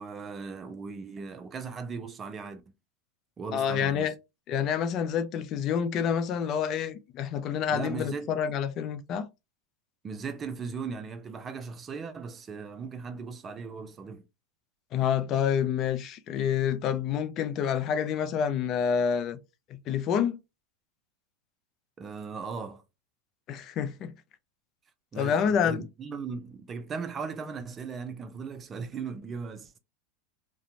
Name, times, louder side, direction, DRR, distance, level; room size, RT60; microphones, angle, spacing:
voice 1, 0.0-2.6 3.4-4.2 7.7-8.3 10.0-14.2 22.0-22.8 25.1-29.8, right 5 dB, 25° right, 0.5 m, -38 dB
voice 2, 3.5-4.1 4.5-9.3 14.9-19.4 19.7-20.4 23.5-24.1 25.2-25.9, left 8 dB, 45° left, 0.4 m, -28 dB
2.4 x 2.2 x 2.9 m
hypercardioid pair, 105°, 0 cm